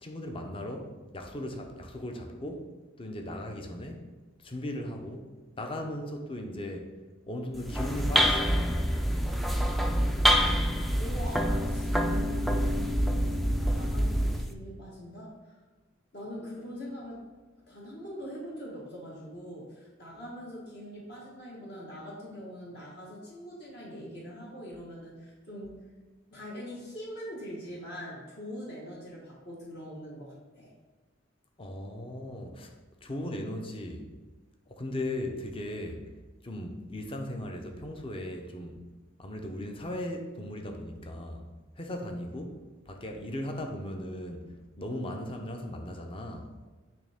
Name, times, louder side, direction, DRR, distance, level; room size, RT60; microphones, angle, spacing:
voice 1, 0.0-2.7 3.0-4.0 4.4-6.9 7.3-8.9 31.6-32.7 33.0-34.1 34.7-36.0 36.4-38.8 39.2-41.5 41.8-42.6 42.9-44.5 44.8-46.5, left 1 dB, 30° left, 3 dB, 0.6 m, -37 dB
sound 1, 7.5-14.5, equal, ahead, 0.3 m, -26 dB
voice 2, 11.0-13.0 13.7-15.5 16.1-17.2 17.7-25.8 26.3-30.7, equal, 55° left, -5 dB, 1.5 m, -42 dB
8.7 x 3.3 x 3.6 m, 1.3 s
head